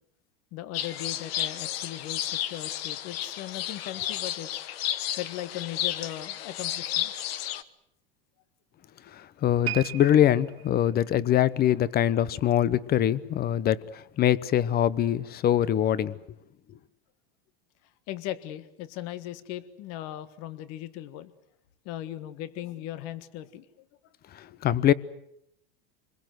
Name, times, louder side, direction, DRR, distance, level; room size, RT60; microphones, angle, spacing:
voice 1, 0.5-4.6 5.2-7.1 18.1-21.3 21.8-23.9, left 13 dB, 55° left, 1.6 m, -38 dB
sound 1, 0.7-7.6, left 12 dB, 85° left, 1.2 m, -32 dB
voice 2, 9.4-16.2 24.6-24.9, left 11 dB, 30° left, 0.9 m, -23 dB
sound 2, 9.6-12.9 13.2-13.5 14.2-14.3, right 18 dB, 90° right, 3.0 m, -40 dB
26.5 x 21.5 x 7.9 m
supercardioid pair, 125°, 29 cm